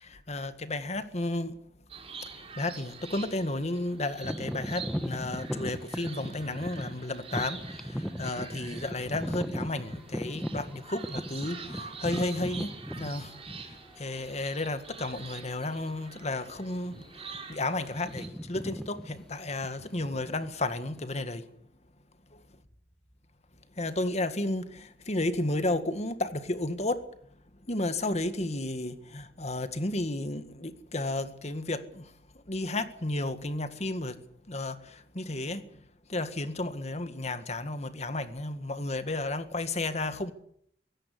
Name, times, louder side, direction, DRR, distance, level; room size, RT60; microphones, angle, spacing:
voice 1, 0.0-1.6 2.2-2.3 2.6-13.4 14.0-21.5 23.8-27.0 27.7-32.1 32.5-34.2 34.5-35.7 36.1-40.3, left 2 dB, 40° left, 1.8 m, -33 dB
sound 1, 1.9-18.3, right 5 dB, 35° right, 4.5 m, -46 dB
sound 2, 4.2-14.0 14.6-14.8 15.4-15.6 15.9-16.1 16.8-17.4 17.6-21.0, equal, 5° left, 1.2 m, -38 dB
23.5 x 16.5 x 8.3 m
head